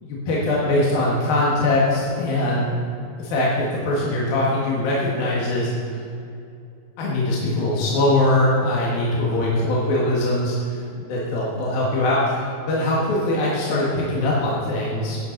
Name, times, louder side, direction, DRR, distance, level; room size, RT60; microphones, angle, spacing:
voice 1, 0.0-2.8 3.2-5.7 7.0-15.2, left 1 dB, 65° left, -5 dB, 3.5 m, -22 dB
16.0 x 12.5 x 4.0 m, 2.6 s
omnidirectional pair, 4.5 m